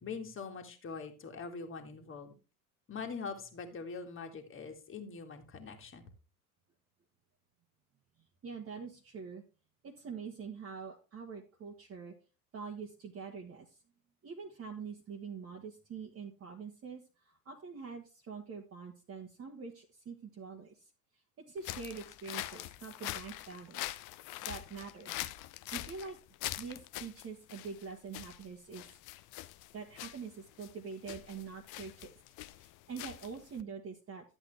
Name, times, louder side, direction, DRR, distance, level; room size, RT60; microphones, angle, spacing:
voice 1, 0.0-2.3 2.9-6.0, left 5 dB, 25° left, 5 dB, 2.0 m, -43 dB
voice 2, 8.4-9.4 9.8-12.1 12.5-13.8 14.2-20.8 21.5-24.0 24.4-25.2 25.7-26.2 26.6-28.9 29.7-32.1 32.6-34.4, right 5 dB, 30° right, 1 dB, 1.5 m, -45 dB
sound 1, 21.6-33.6, left 16 dB, 45° left, 0.6 m, -44 dB
11.5 x 8.0 x 3.3 m, 0.32 s
figure-of-eight pair, 70°, 45 cm